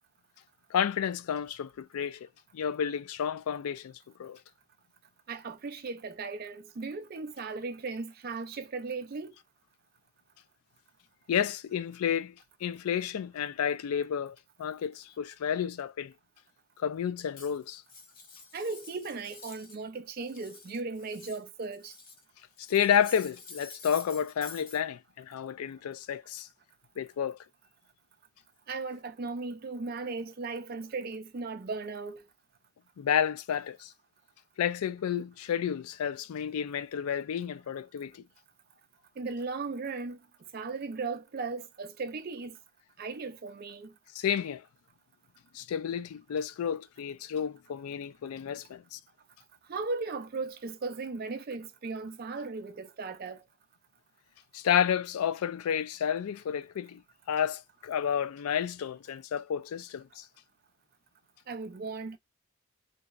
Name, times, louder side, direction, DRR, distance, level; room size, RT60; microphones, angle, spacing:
voice 1, 0.7-2.2 2.5-3.9 4.2-4.4 11.3-12.3 12.6-16.1 16.8-17.8 22.7-26.5 27.0-27.4 33.0-33.9 34.6-38.2 44.2-44.6 45.5-49.0 54.5-57.0 57.3-60.2, left 8 dB, 90° left, 0.3 m, -31 dB
voice 2, 5.3-9.3 18.5-21.9 28.7-32.2 39.2-40.2 40.5-42.5 43.0-43.9 49.7-53.4 61.5-62.2, right 4 dB, 45° right, 0.4 m, -37 dB
Cutlery silverware, 17.3-19.8 20.1-22.2 22.6-24.8, left 4 dB, 40° left, 0.6 m, -49 dB
2.7 x 2.0 x 2.3 m
head